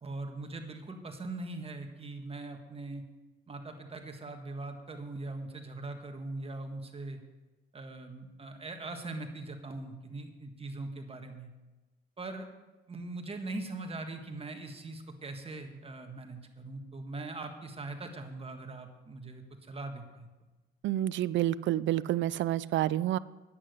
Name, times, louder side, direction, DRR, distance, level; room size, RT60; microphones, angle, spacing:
voice 1, 0.0-3.0 3.5-7.2 7.7-11.5 12.2-12.5 12.9-20.3, right 2 dB, 30° right, 5 dB, 1.5 m, -41 dB
voice 2, 20.8-23.2, right 13 dB, 70° right, 18 dB, 0.4 m, -29 dB
10.0 x 8.6 x 6.6 m, 1.1 s
cardioid pair, 90°, 20 cm